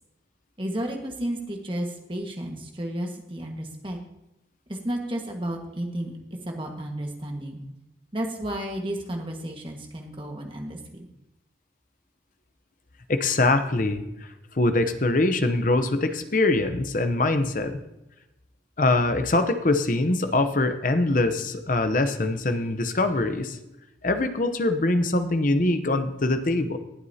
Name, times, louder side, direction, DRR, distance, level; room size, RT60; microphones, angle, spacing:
voice 1, 0.6-4.0 4.7-6.1 6.4-7.6 8.1-11.1, right 1 dB, 30° right, 2 dB, 1.6 m, -32 dB
voice 2, 13.1-14.0 14.5-17.8 18.8-23.6 24.0-26.8, left 2 dB, 45° left, 9 dB, 0.8 m, -23 dB
19.0 x 8.2 x 2.8 m, 0.93 s
head